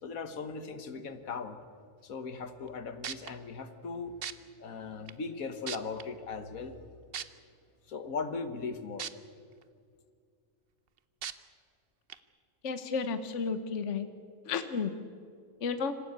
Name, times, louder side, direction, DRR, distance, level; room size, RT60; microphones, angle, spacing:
voice 1, 0.0-1.6 2.0-4.2 4.6-6.8 7.9-9.1, left 4 dB, 75° left, 10 dB, 1.7 m, -38 dB
sound 1, 2.7-2.8 3.0-3.3 4.2-4.3 5.1-5.2 5.7-6.0 7.1-7.2 9.0-9.1 9.6-9.7 11.2-11.3 12.1-12.2, right 8 dB, 50° right, 0.9 m, -36 dB
voice 2, 12.6-14.1 14.5-14.9 15.6-15.9, left 5 dB, 60° left, 10 dB, 1.3 m, -32 dB
26.0 x 15.0 x 8.8 m, 2.2 s
omnidirectional pair, 1.5 m